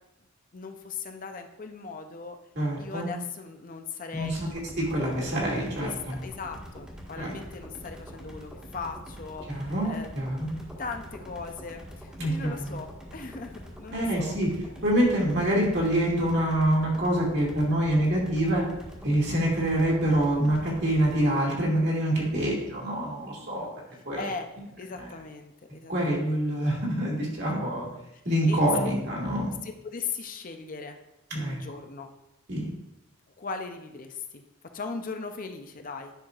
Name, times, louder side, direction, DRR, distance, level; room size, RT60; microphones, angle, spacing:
voice 1, 0.5-2.4 2.8-4.5 5.8-5.9 6.2-10.1 10.8-14.3 23.4-23.7 24.1-24.5 24.8-26.4 27.4-27.9 28.5-28.6 29.6-31.0 31.3-32.1 33.4-34.4 34.7-36.1, left 4 dB, 40° left, 5 dB, 0.6 m, -39 dB
voice 2, 2.5-3.1 4.1-6.2 7.2-7.3 9.5-10.5 12.2-12.8 13.9-14.5 14.8-18.6 19.0-23.7 24.1-24.2 25.0-25.1 25.9-27.9 28.2-29.6 31.3-31.6 32.5-32.7, right 1 dB, 55° right, -3 dB, 2.3 m, -26 dB
sound 1, 4.1-21.3, equal, 5° right, 1.5 m, -44 dB
10.5 x 5.8 x 2.4 m, 0.91 s
head